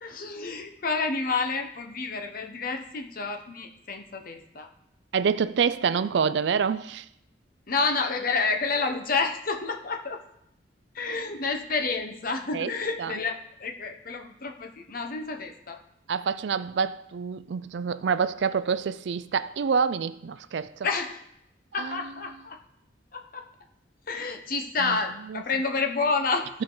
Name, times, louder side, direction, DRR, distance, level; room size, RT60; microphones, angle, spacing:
voice 1, 0.0-4.7 7.7-10.2 10.9-13.3 13.6-15.8 20.8-21.2 21.7-22.6 23.1-23.4 24.1-26.5, left 4 dB, 50° left, 1.0 m, -29 dB
voice 2, 5.1-7.1 12.5-12.7 13.0-13.2 16.1-20.9 21.8-22.0 24.8-25.0 25.3-25.4, right 6 dB, 70° right, 0.4 m, -27 dB
14.5 x 5.1 x 3.9 m
head